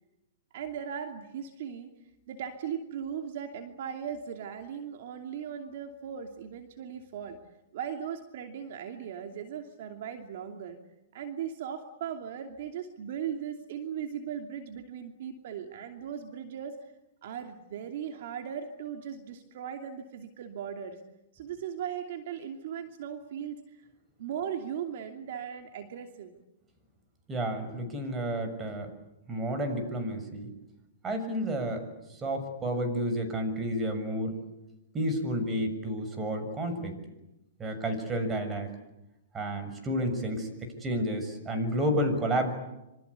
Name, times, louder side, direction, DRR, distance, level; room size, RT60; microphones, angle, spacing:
voice 1, 0.5-1.9 2.3-7.4 7.7-10.8 11.1-16.8 17.2-21.0 21.3-23.9 24.2-26.3, right 8 dB, 60° right, 4 dB, 2.8 m, -38 dB
voice 2, 27.3-28.9 29.3-30.5 31.0-31.9 32.1-34.4 34.9-36.9 37.6-38.7 39.3-42.5, equal, 20° right, 7 dB, 6.8 m, -31 dB
27.0 x 26.0 x 8.4 m, 0.93 s
hypercardioid pair, 130°, 0 cm